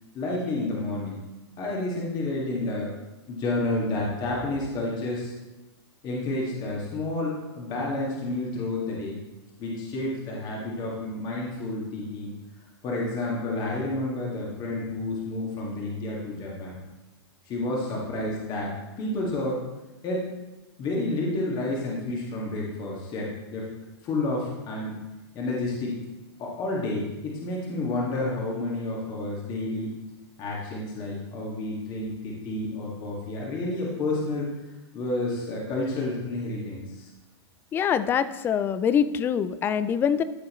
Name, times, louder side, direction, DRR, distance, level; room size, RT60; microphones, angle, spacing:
voice 1, 0.1-1.2 1.6-2.9 3.3-5.3 6.0-9.2 9.6-12.3 12.8-16.8 17.5-19.6 20.0-20.2 20.8-23.7 24.0-25.0 25.3-26.0 26.4-29.9 30.4-34.5 34.9-37.1, left 2 dB, 30° left, -3 dB, 1.9 m, -30 dB
voice 2, 37.7-40.2, left 8 dB, 15° left, 14 dB, 0.3 m, -24 dB
13.5 x 6.4 x 3.1 m, 1.1 s
hypercardioid pair, 140°, 14 cm